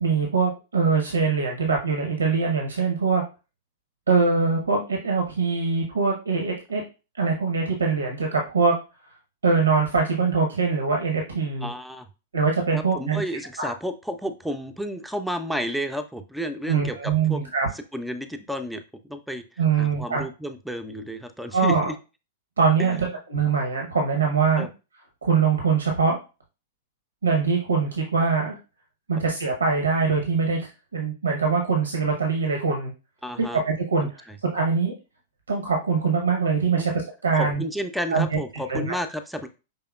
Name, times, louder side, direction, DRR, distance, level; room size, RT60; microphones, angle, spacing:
voice 1, 0.0-3.2 4.1-6.8 7.1-8.7 9.4-11.7 12.3-13.2 13.6-13.7 16.7-17.7 19.6-20.2 21.5-21.9 22.6-24.7 25.2-26.2 27.2-28.5 29.1-32.9 33.4-34.3 34.5-34.9 35.5-37.6 38.1-38.4 38.7-39.0, right 5 dB, 75° right, 2 dB, 0.8 m, -23 dB
voice 2, 11.6-12.1 12.7-17.5 17.9-18.8 19.1-19.4 19.8-21.9 22.8-23.1 24.6-24.7 33.2-33.6 34.3-34.4 37.4-39.5, equal, ahead, 7 dB, 0.5 m, -31 dB
5.5 x 3.4 x 2.3 m, 0.30 s
figure-of-eight pair, 100°, 0 cm